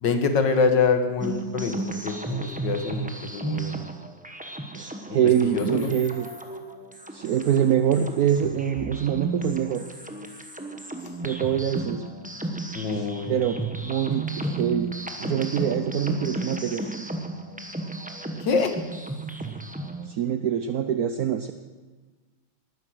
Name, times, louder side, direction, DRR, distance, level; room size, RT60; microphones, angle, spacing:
voice 1, 0.0-3.8 5.1-5.2 5.5-5.9 12.7-13.5 18.4-18.7, left 5 dB, 60° left, 7 dB, 1.9 m, -25 dB
sound 1, 1.2-20.1, right 2 dB, 10° right, 0.3 m, -34 dB
voice 2, 4.7-6.3 7.1-9.8 11.2-12.0 12.9-14.9 15.2-16.9 20.0-21.5, right 9 dB, 70° right, 8 dB, 0.9 m, -25 dB
19.5 x 10.0 x 6.3 m, 1.3 s
omnidirectional pair, 2.3 m